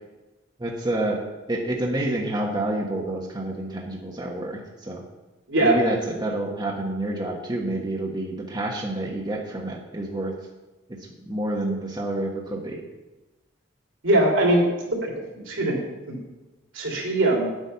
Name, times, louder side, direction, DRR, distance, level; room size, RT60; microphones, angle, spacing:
voice 1, 0.6-1.2 1.5-5.0 5.6-10.3 10.9-12.8, right 1 dB, 20° right, -1 dB, 1.1 m, -28 dB
voice 2, 5.5-5.8 14.0-14.6 15.0-15.8 16.1-16.2 16.7-17.5, right 1 dB, 80° right, -1 dB, 3.1 m, -21 dB
9.9 x 8.2 x 5.6 m, 1.1 s
head